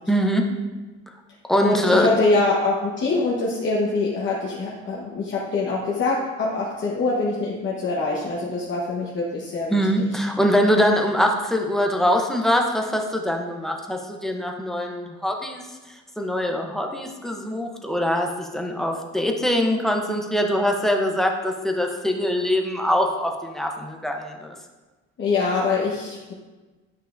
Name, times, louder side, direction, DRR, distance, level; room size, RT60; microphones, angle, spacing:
voice 1, 0.1-0.4 1.5-2.1 9.7-15.6 16.2-24.6, equal, ahead, 2 dB, 0.7 m, -23 dB
voice 2, 1.6-9.7 25.2-26.3, left 3 dB, 40° left, -5 dB, 1.1 m, -24 dB
11.5 x 5.4 x 2.5 m, 1.2 s
cardioid pair, 145°, 29 cm